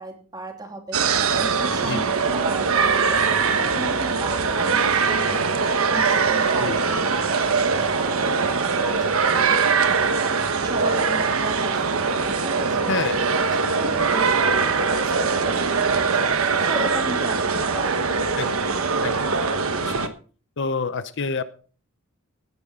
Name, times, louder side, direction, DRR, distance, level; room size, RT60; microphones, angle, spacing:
voice 1, 0.0-13.8 14.1-15.6 15.9-18.2, right 1 dB, 20° right, 2 dB, 2.9 m, -37 dB
sound 1, 0.9-20.1, right 5 dB, 75° right, 1.2 m, -22 dB
voice 2, 12.9-13.2 18.4-18.5 19.0-19.2 19.8-20.1 20.6-21.4, left 4 dB, 60° left, 13 dB, 0.8 m, -27 dB
17.0 x 9.6 x 3.7 m, 0.40 s
head